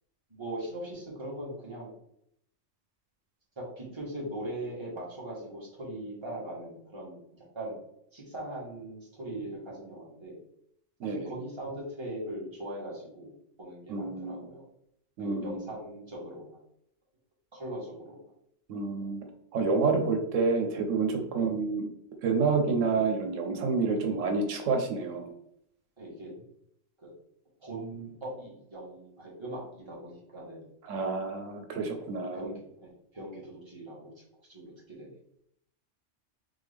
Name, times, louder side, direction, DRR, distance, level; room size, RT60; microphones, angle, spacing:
voice 1, 0.3-1.9 3.5-7.8 8.1-10.4 11.0-13.3 13.6-14.6 15.2-16.6 17.5-18.3 21.3-21.6 23.9-24.1 26.0-26.3 27.0-27.1 27.6-30.7 31.9-34.2 34.5-35.2, right 1 dB, 25° right, -5 dB, 1.5 m, -40 dB
voice 2, 11.0-11.3 13.9-14.4 15.2-15.6 18.7-19.2 19.5-21.9 22.2-25.3 30.9-32.5, right 4 dB, 85° right, 4 dB, 1.1 m, -28 dB
3.7 x 3.6 x 3.4 m, 0.74 s
omnidirectional pair, 1.3 m